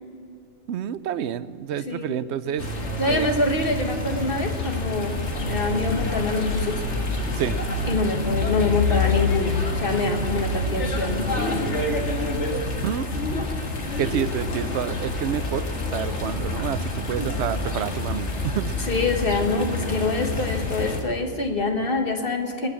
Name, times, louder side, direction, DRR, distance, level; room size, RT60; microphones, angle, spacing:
voice 1, 0.7-2.6 3.1-3.3 7.4-7.5 12.8-13.1 14.0-15.6 15.9-18.7, right 9 dB, 70° right, 15 dB, 0.8 m, -28 dB
voice 2, 1.8-2.2 3.0-5.2 5.5-6.8 7.8-11.7 17.2-17.3 18.8-22.7, left 2 dB, 50° left, 4 dB, 1.7 m, -25 dB
sound 1, 2.6-21.0, left 2 dB, 75° left, 2.0 m, -27 dB
21.0 x 8.3 x 7.3 m, 2.6 s
omnidirectional pair, 1.2 m